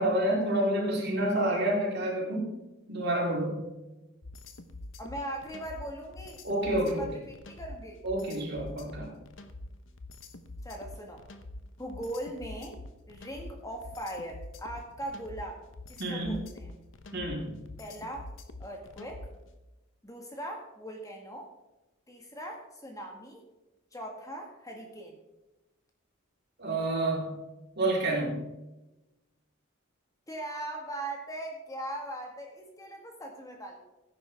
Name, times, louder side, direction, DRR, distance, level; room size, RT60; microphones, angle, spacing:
voice 1, 0.0-2.5 2.9-3.6 6.4-7.1 8.0-9.1 16.0-16.3 17.1-17.6 26.6-27.4 27.8-28.4, right 1 dB, 55° right, -2 dB, 3.9 m, -28 dB
sound 1, 4.2-19.5, left 2 dB, 65° left, 1.0 m, -45 dB
voice 2, 5.0-6.4 6.9-8.0 10.6-11.2 11.8-12.8 13.1-15.6 15.9-16.7 17.8-18.3 18.6-19.3 20.0-21.5 22.1-23.4 23.9-25.2 30.3-33.8, right 1 dB, 15° left, 1 dB, 1.7 m, -40 dB
16.5 x 9.7 x 3.5 m, 1.0 s
head